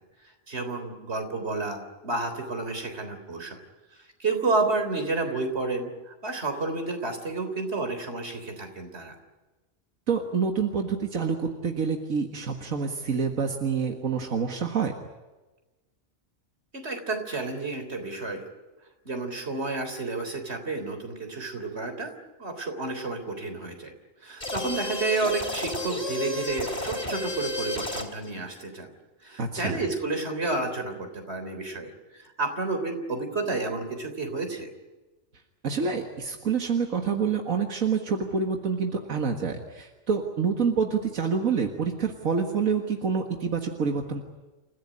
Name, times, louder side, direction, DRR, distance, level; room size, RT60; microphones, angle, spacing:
voice 1, 0.5-3.6 4.2-9.1 16.7-18.4 19.1-22.1 22.4-23.9 24.2-28.9 29.2-34.7, right 3 dB, 50° right, 6 dB, 3.9 m, -30 dB
voice 2, 10.1-14.9 29.4-29.8 35.6-44.2, right 5 dB, 85° right, 4 dB, 2.1 m, -27 dB
sound 1, 24.4-28.3, left 3 dB, 25° left, 3.3 m, -32 dB
29.0 x 15.5 x 10.0 m, 1.2 s
omnidirectional pair, 1.4 m